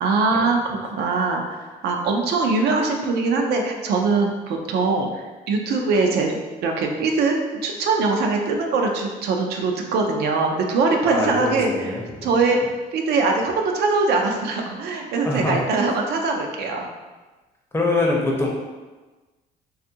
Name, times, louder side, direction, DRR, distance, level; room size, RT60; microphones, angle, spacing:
voice 1, 0.0-6.4 6.6-7.4 7.6-12.6 12.9-16.9, right 3 dB, 75° right, 2 dB, 0.4 m, -22 dB
voice 2, 11.0-12.4 15.2-15.6 17.7-18.5, left 2 dB, 15° left, -2 dB, 0.5 m, -24 dB
2.6 x 2.4 x 2.7 m, 1.2 s
cardioid pair, 110°, 17 cm